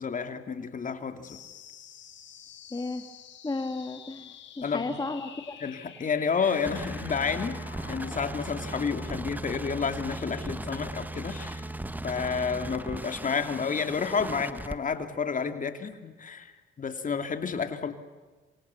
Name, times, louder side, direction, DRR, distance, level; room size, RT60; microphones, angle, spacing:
voice 1, 0.0-1.4 4.6-4.8 5.6-7.6 7.8-11.7 12.0-16.5 16.8-17.9, left 5 dB, 40° left, 7 dB, 2.8 m, -30 dB
sound 1, 1.2-12.2, left 8 dB, 70° left, 4.3 m, -49 dB
voice 2, 2.7-3.1 3.4-5.6, left 3 dB, 20° left, 6 dB, 2.2 m, -34 dB
sound 2, 6.4-14.8, right 2 dB, 10° right, 1.3 m, -37 dB
27.5 x 25.0 x 7.2 m, 1.3 s
cardioid pair, 90°, 20 cm